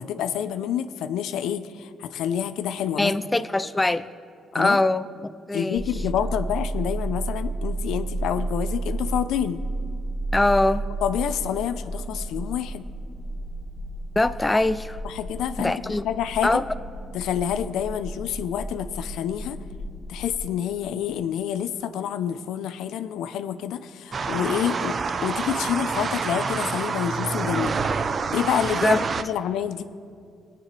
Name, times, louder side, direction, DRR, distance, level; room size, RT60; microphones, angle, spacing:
voice 1, 0.0-3.1 4.5-4.8 5.5-9.6 11.0-12.9 15.0-16.6 17.1-19.6 20.1-27.8 28.3-29.8, left 9 dB, 85° left, 0.5 m, -28 dB
voice 2, 3.0-4.1 4.5-5.9 10.3-10.9 14.2-15.0 15.6-16.0 16.4-16.7 28.8-29.2, left 2 dB, 15° left, 0.4 m, -22 dB
sound 1, 5.7-20.5, right 2 dB, 35° left, 2.9 m, -32 dB
sound 2, 24.1-29.2, right 5 dB, 45° right, 0.5 m, -27 dB
24.0 x 9.1 x 3.2 m
cardioid pair, 90°, 0 cm